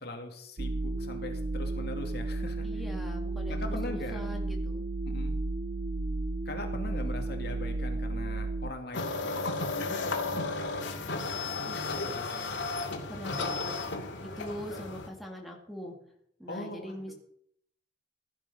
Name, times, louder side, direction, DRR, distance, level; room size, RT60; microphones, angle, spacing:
voice 1, 0.0-2.7 3.5-4.3 5.0-5.4 6.4-11.2 11.6-12.6 16.5-17.1, left 2 dB, 60° left, 3 dB, 2.7 m, -41 dB
sound 1, 0.6-8.7, right 2 dB, 45° right, 0.7 m, -33 dB
voice 2, 2.6-4.8 11.7-12.3 13.1-13.8 14.2-16.0 16.4-17.1, equal, ahead, 1 dB, 2.3 m, -42 dB
sound 2, 8.9-15.1, left 3 dB, 85° left, 2.4 m, -34 dB
16.0 x 10.0 x 5.6 m, 0.69 s
head